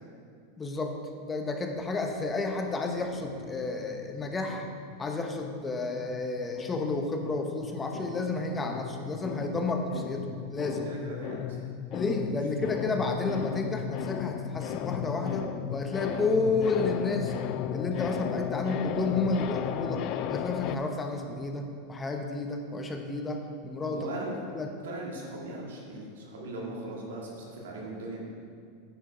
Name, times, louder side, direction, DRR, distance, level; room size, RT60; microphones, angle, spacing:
voice 1, 0.6-0.9 1.2-4.7 5.0-10.9 11.9-17.3 17.7-20.0 20.3-24.1 24.5-24.7, left 3 dB, 20° left, 4 dB, 0.8 m, -31 dB
sound 1, 3.1-5.6 5.9-20.8, left 10 dB, 50° left, 0.4 m, -36 dB
voice 2, 10.8-11.6 23.9-24.3 24.8-28.2, right 2 dB, 85° right, -2 dB, 1.8 m, -39 dB
9.2 x 5.0 x 4.9 m, 2.3 s
hypercardioid pair, 115°, 0 cm